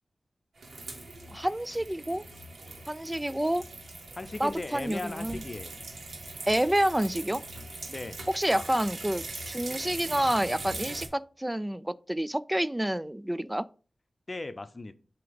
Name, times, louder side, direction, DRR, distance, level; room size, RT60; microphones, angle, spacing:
sound 1, 0.6-11.1, right 2 dB, 80° right, 1.4 m, -41 dB
voice 1, 1.3-2.2 2.9-3.6 4.4-5.4 6.5-7.4 8.3-13.6, right 1 dB, 15° right, 0.3 m, -28 dB
voice 2, 4.1-5.8 7.9-8.2 14.3-14.9, left 2 dB, 45° left, 0.7 m, -37 dB
7.6 x 2.9 x 5.1 m
cardioid pair, 50°, 0 cm